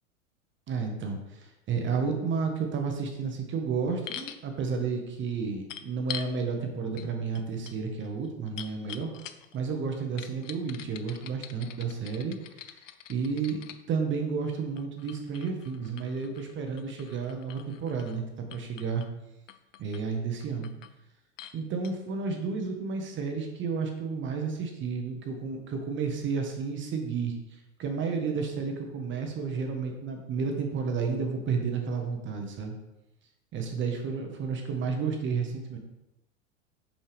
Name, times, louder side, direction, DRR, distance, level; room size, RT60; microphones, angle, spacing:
voice 1, 0.7-9.1 9.5-12.8 13.1-13.6 13.9-19.0 19.8-20.7 21.5-27.3 27.8-32.7 33.5-35.8, right 5 dB, 30° right, 4 dB, 1.0 m, -31 dB
sound 1, 4.1-4.4 5.7-6.3 7.0-7.1 7.3-9.6 10.2-13.8 14.8-18.2 18.5-19.1 19.5-20.0 20.4-21.0 21.4-21.6 21.8-21.9, left 10 dB, 85° left, 0.5 m, -44 dB
5.6 x 5.4 x 3.4 m, 0.94 s
hypercardioid pair, 100°, 37 cm